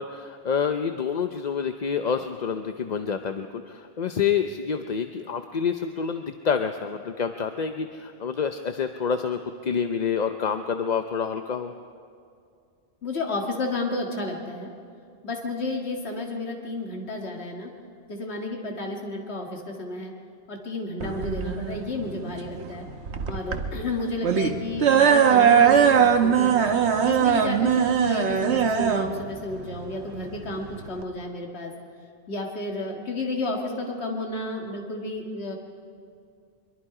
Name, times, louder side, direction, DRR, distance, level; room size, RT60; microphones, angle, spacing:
voice 1, 0.0-11.7, left 6 dB, 45° left, 7 dB, 0.7 m, -28 dB
voice 2, 13.0-14.7 15.2-17.7 18.1-20.1 20.5-22.9 23.3-26.6 27.0-31.7 32.3-35.6, left 2 dB, 75° left, 1 dB, 2.1 m, -32 dB
sound 1, 21.0-31.0, right 7 dB, 85° right, 1.3 m, -21 dB
24.0 x 23.0 x 4.9 m, 2.3 s
omnidirectional pair, 1.1 m